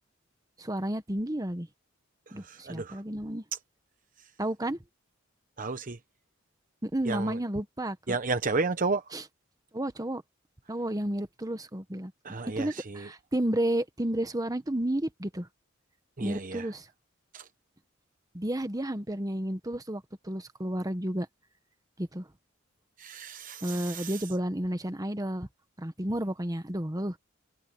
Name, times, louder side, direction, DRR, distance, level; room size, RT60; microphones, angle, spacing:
voice 1, 0.6-1.7 2.3-3.4 4.4-4.8 6.8-8.2 9.1-9.2 9.7-10.2 10.7-12.1 12.6-15.5 16.2-16.9 18.3-21.3 22.0-22.3 23.6-25.5 25.8-27.2, right 1 dB, 20° right, 1.3 m, -31 dB
voice 2, 2.3-3.0 5.6-6.0 7.1-7.4 8.1-9.0 12.2-13.1 16.2-16.7 17.3-17.5 23.0-24.2, right 3 dB, 40° right, 0.9 m, -32 dB
head